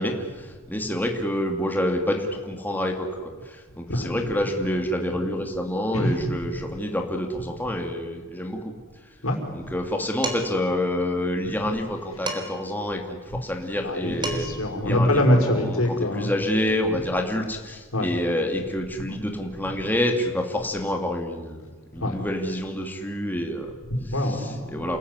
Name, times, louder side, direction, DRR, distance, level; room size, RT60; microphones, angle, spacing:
voice 1, 0.0-8.6 9.5-13.0 13.3-14.5 14.8-15.8 16.1-23.7 24.2-25.0, left 1 dB, 10° left, 2 dB, 2.6 m, -27 dB
voice 2, 5.9-6.4 9.2-9.4 12.2-12.3 13.8-16.3 17.9-18.1 22.0-22.2 23.9-25.0, left 1 dB, 85° left, 2 dB, 5.5 m, -24 dB
Dishes pots and pans, 10.2-10.7 12.3-12.7 13.9-14.0 14.2-14.7, right 2 dB, 20° right, 3.7 m, -32 dB
29.0 x 19.5 x 9.8 m, 1.4 s
head